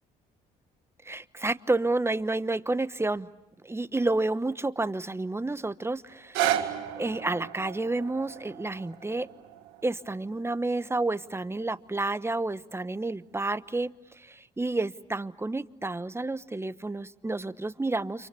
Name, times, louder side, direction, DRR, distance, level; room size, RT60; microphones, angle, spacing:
voice 1, 1.0-3.3 3.6-6.7 7.0-9.3 9.8-18.3, right 2 dB, 15° right, 15 dB, 1.0 m, -30 dB
sound 1, 6.1-12.2 12.8-12.9, right 11 dB, 90° right, 2.1 m, -34 dB
30.0 x 27.0 x 7.0 m, 0.93 s
supercardioid pair, 70°, 18 cm